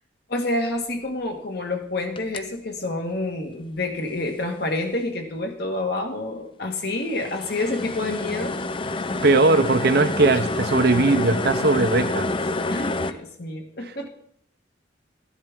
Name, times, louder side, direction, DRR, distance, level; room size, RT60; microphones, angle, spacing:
voice 1, 0.3-8.6 10.2-10.4 12.6-14.1, left 2 dB, 55° left, 4 dB, 1.7 m, -28 dB
sound 1, 2.2-2.4 6.9-13.1, left 2 dB, 25° left, 0.4 m, -27 dB
voice 2, 9.2-12.3, right 3 dB, 55° right, 11 dB, 0.7 m, -19 dB
13.5 x 11.0 x 3.7 m, 0.70 s
head